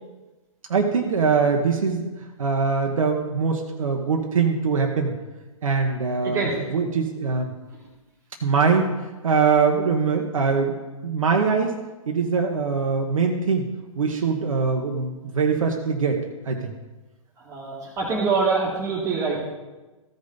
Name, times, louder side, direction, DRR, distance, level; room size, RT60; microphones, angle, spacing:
voice 1, 0.7-2.1 2.4-5.1 5.6-7.5 8.4-10.7 11.0-11.7 12.1-16.7, right 5 dB, 70° right, 2 dB, 1.1 m, -23 dB
voice 2, 6.2-6.6 17.4-19.5, right 4 dB, 15° right, -3 dB, 2.0 m, -25 dB
14.5 x 5.3 x 4.0 m, 1.2 s
hypercardioid pair, 130°, 18 cm